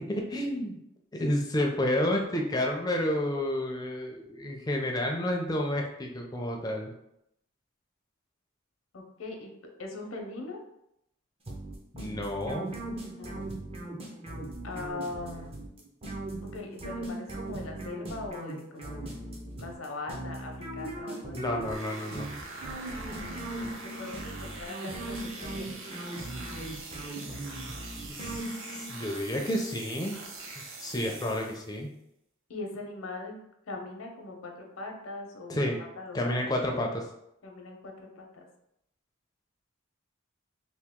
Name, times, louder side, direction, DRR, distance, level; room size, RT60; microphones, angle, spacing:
voice 1, 0.1-0.8 1.1-6.9 11.9-12.7 21.3-22.3 28.1-28.4 28.7-30.2 30.6-31.9 35.5-35.8 36.1-37.0, left 1 dB, 20° left, 1 dB, 0.5 m, -30 dB
voice 2, 8.9-9.5 9.8-10.6 13.1-13.5 14.6-15.7 16.4-19.1 19.6-21.5 23.1-26.0 32.5-33.4 33.7-36.4 37.4-38.5, left 2 dB, 85° left, 2 dB, 0.7 m, -41 dB
sound 1, 11.5-28.9, right 1 dB, 30° right, 0.6 m, -39 dB
sound 2, 21.6-31.8, right 3 dB, 75° right, 0.7 m, -43 dB
2.9 x 2.7 x 3.6 m, 0.80 s
head